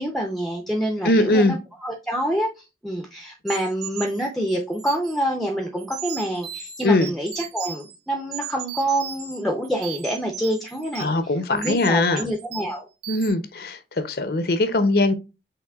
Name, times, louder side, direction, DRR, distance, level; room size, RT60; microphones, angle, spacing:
voice 1, 0.0-12.9, right 1 dB, ahead, 0.6 m, -27 dB
voice 2, 1.0-1.6 6.8-7.1 11.0-12.3 13.1-13.8 14.0-15.1, left 2 dB, 55° left, 0.6 m, -20 dB
sound 1, 3.5-5.2 5.8-8.0 8.3-9.4 9.6-11.2 11.6-11.9 12.2-12.8 13.0-13.3, right 9 dB, 60° right, 1.1 m, -36 dB
5.8 x 3.5 x 2.3 m
head